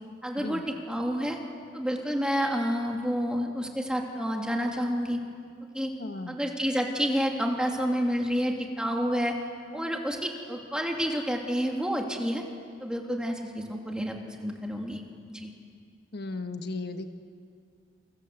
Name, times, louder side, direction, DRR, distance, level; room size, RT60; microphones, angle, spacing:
voice 1, 0.2-1.4 1.7-5.2 5.7-5.9 6.3-9.4 9.7-12.4 12.8-15.0 15.3-15.5, equal, 5° right, 1 dB, 2.8 m, -29 dB
voice 2, 6.0-6.4 16.1-17.1, left 3 dB, 60° left, 7 dB, 1.2 m, -35 dB
28.0 x 26.0 x 8.1 m, 2.3 s
head